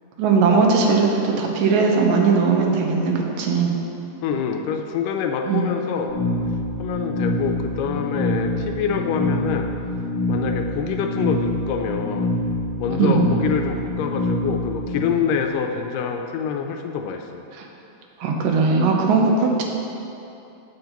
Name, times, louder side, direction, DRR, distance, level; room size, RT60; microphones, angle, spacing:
voice 1, 0.2-3.7 5.5-5.7 13.0-13.2 17.6-17.7 18.2-19.6, right 4 dB, 80° right, 1 dB, 2.5 m, -19 dB
voice 2, 4.2-6.1 6.8-9.7 10.3-12.3 12.8-17.4, left 6 dB, 80° left, 4 dB, 2.1 m, -26 dB
sound 1, 6.1-15.1, left 1 dB, 30° left, 1.4 m, -25 dB
13.5 x 7.8 x 3.0 m, 2.8 s
omnidirectional pair, 4.0 m